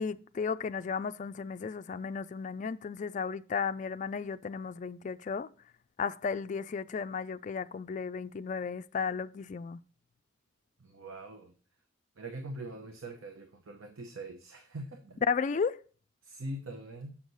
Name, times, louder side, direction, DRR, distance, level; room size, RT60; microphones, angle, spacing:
voice 1, 0.0-5.5 6.0-9.8 15.3-15.8, left 5 dB, 35° left, 0.3 m, -34 dB
voice 2, 10.8-11.5 12.2-15.2 16.2-17.2, right 1 dB, 75° right, 0.9 m, -43 dB
7.2 x 6.4 x 4.0 m
head